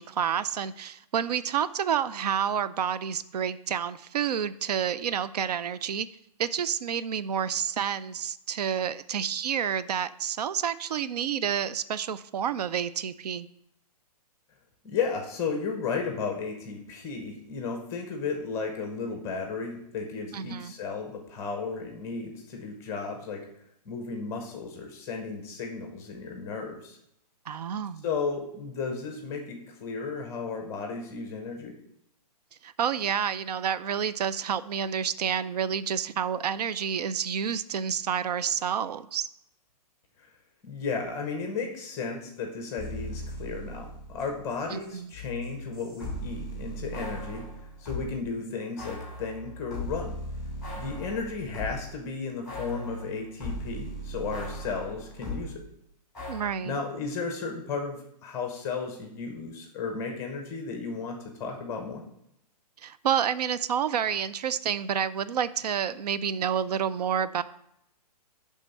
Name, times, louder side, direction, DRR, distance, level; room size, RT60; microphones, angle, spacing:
voice 1, 0.0-6.1 6.4-13.5 20.3-20.7 27.5-28.0 32.6-39.3 44.7-45.1 56.3-56.8 62.8-67.4, right 8 dB, 80° right, 15 dB, 0.4 m, -29 dB
voice 2, 14.8-23.4 23.9-27.0 28.0-31.7 40.6-47.5 47.8-50.2 50.8-55.6 56.6-62.0, left 5 dB, 15° left, 3 dB, 0.7 m, -34 dB
sound 1, 42.8-44.6 44.8-48.1 48.8-52.0 52.5-55.5 56.1-56.4, equal, 5° right, 2.7 m, -38 dB
10.0 x 3.6 x 5.3 m, 0.79 s
hypercardioid pair, 165°, 20 cm